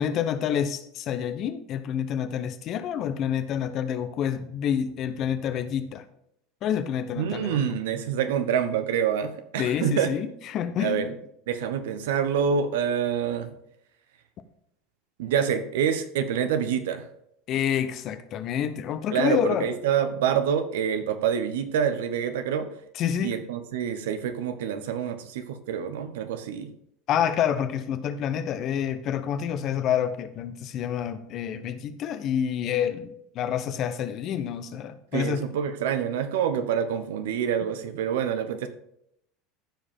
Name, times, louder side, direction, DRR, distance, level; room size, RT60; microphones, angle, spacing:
voice 1, 0.0-6.0 6.6-7.8 9.6-11.0 17.5-19.7 22.9-23.4 27.1-35.4, left 9 dB, 50° left, 11 dB, 0.9 m, -28 dB
voice 2, 7.2-10.1 10.8-11.1 11.5-13.6 15.2-17.1 19.1-22.7 23.2-26.7 35.1-38.7, right 8 dB, 75° right, 10 dB, 0.9 m, -26 dB
14.5 x 5.0 x 3.7 m, 0.75 s
hypercardioid pair, 80°, 0 cm